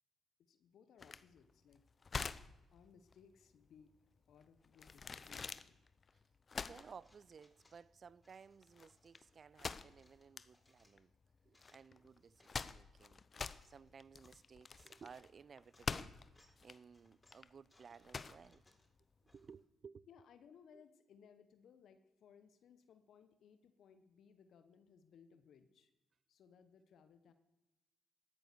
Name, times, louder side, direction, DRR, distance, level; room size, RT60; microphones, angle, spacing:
voice 1, 0.4-1.8 2.7-3.9 4.3-5.8 20.1-25.9 26.3-27.3, left 7 dB, 65° left, 1.1 m, -64 dB
sound 1, 1.0-19.5, left 5 dB, 40° left, 0.6 m, -47 dB
voice 2, 6.7-11.1 11.4-13.2 13.7-16.2 16.6-18.6 19.3-20.1 20.7-20.8, right 6 dB, 50° right, 0.5 m, -58 dB
sound 2, 6.9-7.8 8.2-9.3 9.8-11.0 11.4-12.6 13.1-14.4 14.8-15.2 15.5-15.9 16.3-16.6 16.9-19.6, left 1 dB, 20° left, 4.4 m, -73 dB
13.5 x 13.0 x 6.9 m
hypercardioid pair, 40°, 0 cm